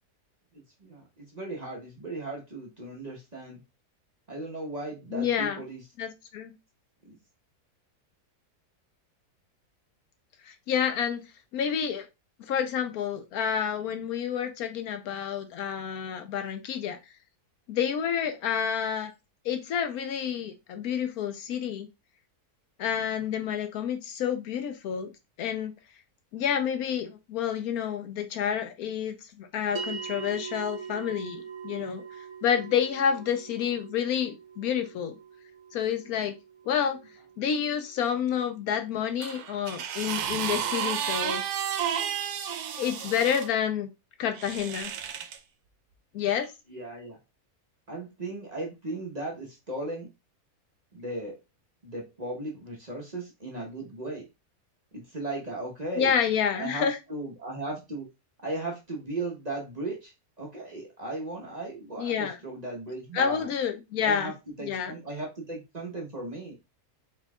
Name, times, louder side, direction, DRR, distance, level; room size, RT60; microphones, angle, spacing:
voice 1, 0.5-3.6 4.3-5.8 7.0-7.2 46.7-47.2 47.9-50.1 50.9-51.4 51.8-54.3 54.9-56.1 56.6-58.1 58.4-63.5 64.0-66.5, right 2 dB, 30° right, -2 dB, 0.9 m, -36 dB
voice 2, 5.1-5.6 6.0-6.5 10.4-11.2 11.5-12.1 12.5-17.0 17.7-19.1 19.4-21.9 22.8-25.1 25.4-25.7 26.3-35.2 35.7-36.3 36.7-37.0 37.4-41.4 42.7-43.9 44.2-44.9 46.1-46.5 56.0-57.0 62.0-62.4 63.1-64.3 64.6-64.9, left 8 dB, 75° left, 8 dB, 1.0 m, -29 dB
sound 1, 29.8-40.3, right 6 dB, 50° right, 1.2 m, -43 dB
sound 2, 39.2-43.5 44.3-45.4 46.3-46.5, right 9 dB, 75° right, 1.1 m, -32 dB
4.5 x 4.4 x 2.2 m, 0.24 s
omnidirectional pair, 1.7 m